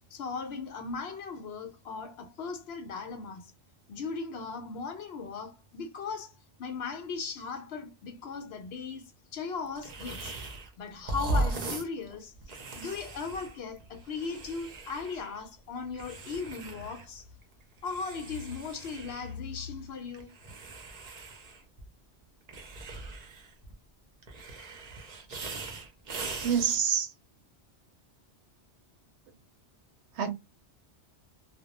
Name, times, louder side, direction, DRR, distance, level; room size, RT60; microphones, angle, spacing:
voice 1, 0.1-3.5 3.9-6.3 6.6-10.3 10.8-17.3 17.8-20.4, left 4 dB, 70° left, 0.8 m, -38 dB
sound 1, 9.8-10.7 11.0-15.4 15.9-17.1 17.4-19.3 20.1-21.9 22.5-23.7 24.2-26.8, right 2 dB, 45° right, 0.6 m, -38 dB
voice 2, 26.4-27.1 30.2-30.3, right 8 dB, 75° right, 0.8 m, -26 dB
2.2 x 2.0 x 2.8 m
omnidirectional pair, 1.2 m